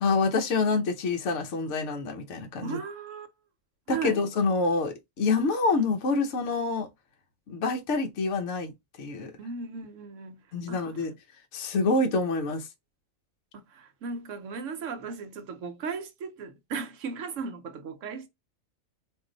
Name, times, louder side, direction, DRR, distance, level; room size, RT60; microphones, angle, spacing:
voice 1, 0.0-2.8 3.9-6.9 7.5-8.7 9.0-9.3 10.5-11.1 11.5-12.7, left 3 dB, 65° left, 1.1 m, -27 dB
voice 2, 2.6-3.3 3.9-4.2 9.4-10.4 10.7-11.1 13.5-18.3, right 5 dB, 70° right, 1.1 m, -36 dB
4.6 x 2.5 x 3.9 m
omnidirectional pair, 1.4 m